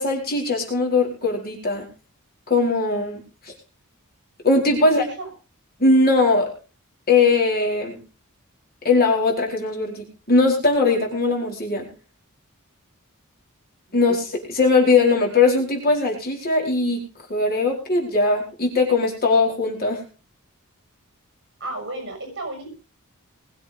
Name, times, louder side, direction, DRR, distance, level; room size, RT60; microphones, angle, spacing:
voice 1, 0.0-1.9 2.5-3.5 4.4-5.1 5.8-6.5 7.1-8.0 8.8-11.9 13.9-17.0 17.3-20.0, left 3 dB, 45° left, 0 dB, 4.5 m, -20 dB
voice 2, 4.8-5.3 21.6-22.7, right 2 dB, 55° right, 4 dB, 6.4 m, -33 dB
21.0 x 7.8 x 5.1 m, 0.36 s
head